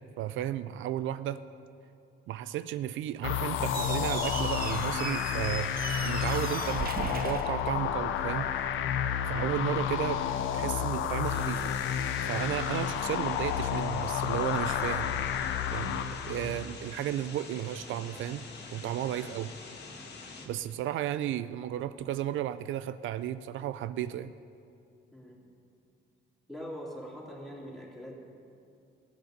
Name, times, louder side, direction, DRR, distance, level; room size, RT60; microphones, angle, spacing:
voice 1, 0.2-1.4 2.3-5.7 6.0-8.5 9.2-10.2 10.5-11.7 12.3-15.1 15.7-18.4 18.7-19.5 20.5-24.3, right 12 dB, 80° right, 13 dB, 0.4 m, -33 dB
sound 1, 3.2-16.7, left 9 dB, 80° left, 0.7 m, -31 dB
Squeak, 3.6-8.3, right 7 dB, 50° right, 0.7 m, -38 dB
sound 2, 11.2-20.5, left 4 dB, 60° left, 1.9 m, -46 dB
voice 2, 25.1-25.5 26.5-28.2, equal, ahead, -4 dB, 3.1 m, -43 dB
15.0 x 8.7 x 6.6 m, 2.5 s
cardioid pair, 90°, 20 cm